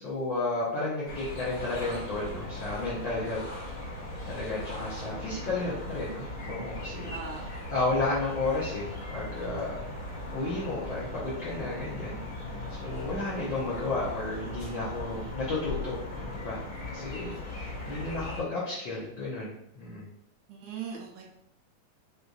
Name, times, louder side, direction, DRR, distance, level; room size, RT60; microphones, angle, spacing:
voice 1, 0.0-3.4 4.3-7.4 7.7-9.8 10.3-12.2 12.8-16.6 16.9-20.0, left 2 dB, 85° left, -7 dB, 1.0 m, -33 dB
sound 1, 1.1-18.4, left 1 dB, 45° left, 1.3 m, -38 dB
voice 2, 7.1-7.5 13.5-13.9 20.5-21.2, right 6 dB, 75° right, -1 dB, 1.7 m, -40 dB
6.2 x 2.6 x 2.4 m, 0.80 s
omnidirectional pair, 3.4 m